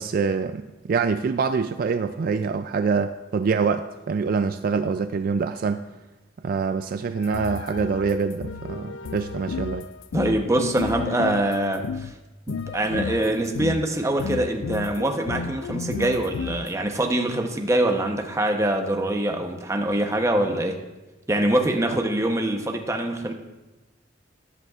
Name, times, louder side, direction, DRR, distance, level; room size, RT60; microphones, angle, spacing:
voice 1, 0.0-5.8 6.4-9.9, right 5 dB, 50° right, 10 dB, 0.3 m, -25 dB
sound 1, 7.2-12.1 12.5-13.9 14.2-16.7, left 5 dB, 85° left, 0.4 m, -33 dB
voice 2, 10.1-12.1 12.5-20.8 21.3-23.3, right 1 dB, 15° right, 3 dB, 0.8 m, -24 dB
13.5 x 10.5 x 2.4 m, 1.1 s
head